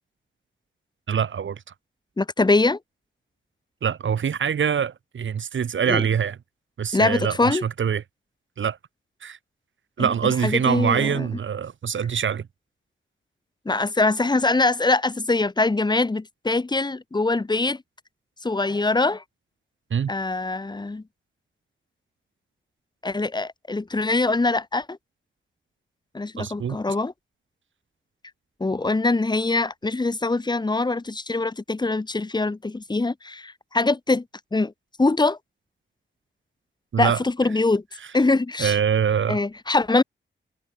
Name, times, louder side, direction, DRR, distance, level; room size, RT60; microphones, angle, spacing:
voice 1, 1.1-1.6 3.8-6.4 6.8-8.0 8.6-8.8 9.2-9.4 10.0-12.5 19.9-20.1 26.4-26.8 36.9-37.2 38.6-39.4, right 7 dB, 75° right, 6.4 m, -24 dB
voice 2, 2.2-2.8 5.9-6.0 6.9-7.6 10.0-11.3 13.7-17.8 18.4-19.2 20.1-21.0 23.0-25.0 26.1-27.1 28.6-34.2 34.5-34.7 35.0-35.4 37.0-37.8 38.1-38.8 39.3-40.0, left 3 dB, 20° left, 3.9 m, -23 dB
wide cardioid pair, 155°, 20 cm